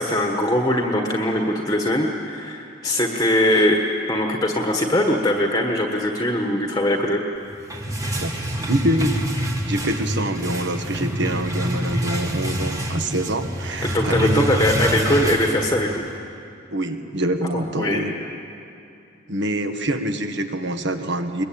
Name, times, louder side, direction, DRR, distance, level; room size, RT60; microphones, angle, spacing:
voice 1, 0.0-7.2 13.8-16.0 17.7-18.2, left 1 dB, 15° left, 2 dB, 1.4 m, -21 dB
sound 1, 7.4-16.1, equal, 15° right, 1.6 m, -26 dB
voice 2, 8.6-9.2 9.6-14.4 16.7-18.1 19.3-21.4, right 1 dB, 55° right, 7 dB, 1.5 m, -25 dB
22.5 x 21.5 x 8.7 m, 2.6 s
head